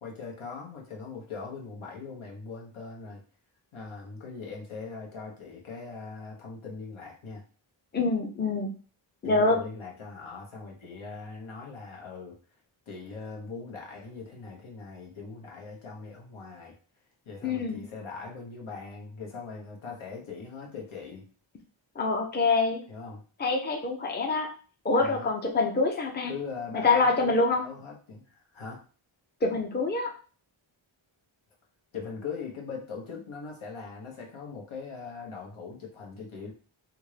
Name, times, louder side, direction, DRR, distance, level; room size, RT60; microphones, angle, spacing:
voice 1, 0.0-3.2 3.7-7.4 9.2-12.4 12.9-16.7 17.2-21.3 22.9-23.2 25.0-25.3 26.3-27.3 27.6-28.8 31.9-36.5, left 4 dB, 80° left, -1 dB, 1.2 m, -40 dB
voice 2, 7.9-8.7 9.2-9.6 17.4-17.8 22.0-22.8 23.4-24.5 24.8-26.3 26.7-27.6 29.4-30.1, left 3 dB, 20° left, 1 dB, 0.7 m, -25 dB
3.5 x 2.6 x 3.3 m, 0.38 s
wide cardioid pair, 115°, 48 cm